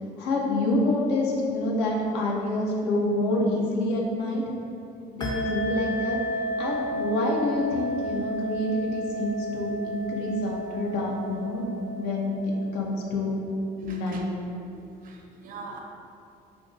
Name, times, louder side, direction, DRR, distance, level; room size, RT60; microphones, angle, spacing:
voice 1, 0.2-4.4 5.1-6.2 6.6-13.4 13.8-14.2, left 1 dB, 90° left, -2 dB, 0.6 m, -27 dB
sound 1, 5.2-13.3, equal, 25° left, 0.4 m, -33 dB
voice 2, 13.8-14.2 14.6-15.8, right 3 dB, 55° right, 1 dB, 0.5 m, -42 dB
2.6 x 2.4 x 3.7 m, 2.6 s
cardioid pair, 110°, 17 cm